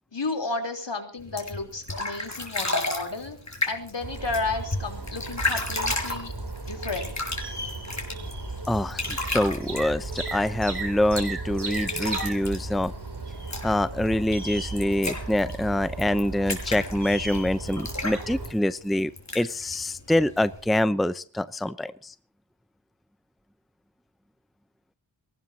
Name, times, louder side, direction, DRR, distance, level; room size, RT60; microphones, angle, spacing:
voice 1, 0.1-3.4 3.7-6.3 6.6-7.1, left 3 dB, 70° left, 4 dB, 3.8 m, -32 dB
sound 1, 1.2-20.8, left 2 dB, 40° left, 5.9 m, -34 dB
sound 2, 4.0-18.5, right 3 dB, 60° right, 3.6 m, -35 dB
voice 2, 8.7-12.9 13.6-22.1, left 1 dB, ahead, 13 dB, 0.7 m, -25 dB
22.5 x 19.0 x 2.9 m, 0.38 s
wide cardioid pair, 50°, 44 cm